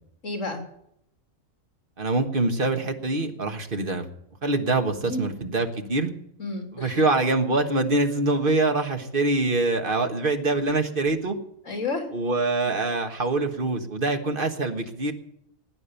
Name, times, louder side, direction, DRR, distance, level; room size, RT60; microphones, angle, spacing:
voice 1, 0.2-0.6 5.0-5.2 6.4-7.0 11.6-12.1 12.7-12.8, left 3 dB, 70° left, 3 dB, 3.3 m, -31 dB
voice 2, 2.0-4.1 4.4-6.1 6.7-11.4 12.1-15.1, right 2 dB, 40° right, 6 dB, 1.6 m, -24 dB
18.5 x 9.7 x 7.0 m, 0.75 s
omnidirectional pair, 1.4 m